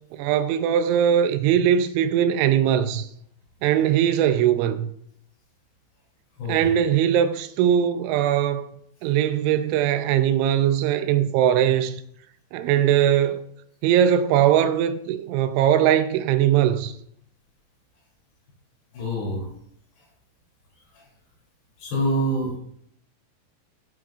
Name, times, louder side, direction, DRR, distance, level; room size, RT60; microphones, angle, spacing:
voice 1, 0.1-3.1 3.6-4.9 6.5-8.7 9.0-12.0 12.5-13.4 13.8-16.9, right 10 dB, 85° right, 2.9 m, -20 dB
voice 2, 18.9-19.5 21.8-22.6, equal, 60° left, 4.7 m, -25 dB
13.5 x 7.7 x 2.4 m
omnidirectional pair, 5.5 m